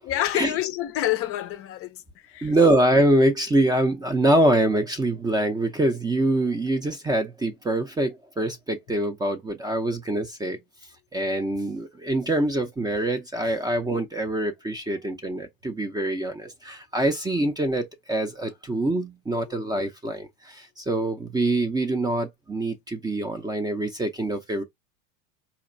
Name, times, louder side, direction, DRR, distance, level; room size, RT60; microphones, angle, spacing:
voice 1, 0.1-2.6 19.4-19.6, left 13 dB, 35° left, 0.5 m, -28 dB
voice 2, 2.4-10.6 11.1-24.6, right 1 dB, 10° right, 0.5 m, -24 dB
4.3 x 2.8 x 2.5 m
supercardioid pair, 125°, 38 cm